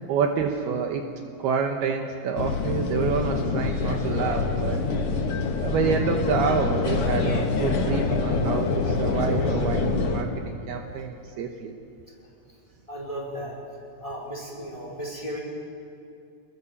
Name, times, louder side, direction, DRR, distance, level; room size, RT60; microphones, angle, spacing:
voice 1, 0.1-1.0 1.4-4.8 5.6-11.7, right 6 dB, 70° right, 3 dB, 3.0 m, -27 dB
sound 1, 2.4-10.2, left 4 dB, 55° left, 1.7 m, -25 dB
voice 2, 10.7-11.0 12.2-12.3 12.9-13.5 14.0-15.4, equal, 10° left, -2 dB, 4.9 m, -36 dB
29.5 x 21.0 x 7.4 m, 2.5 s
omnidirectional pair, 4.9 m